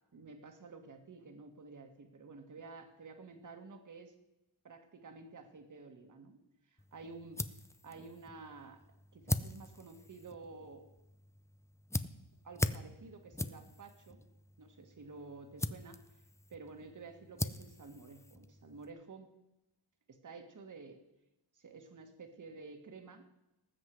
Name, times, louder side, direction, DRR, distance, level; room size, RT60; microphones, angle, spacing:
voice 1, 0.1-4.1 4.6-6.4 6.7-7.5 7.8-8.8 9.1-10.8 12.4-14.3 14.6-16.0 16.5-19.3 20.1-21.0 21.5-23.2, right 4 dB, 40° right, 6 dB, 1.7 m, -51 dB
sound 1, 6.8-18.9, left 2 dB, 5° left, 0.3 m, -42 dB
19.0 x 7.6 x 4.7 m, 0.93 s
wide cardioid pair, 135°, 47 cm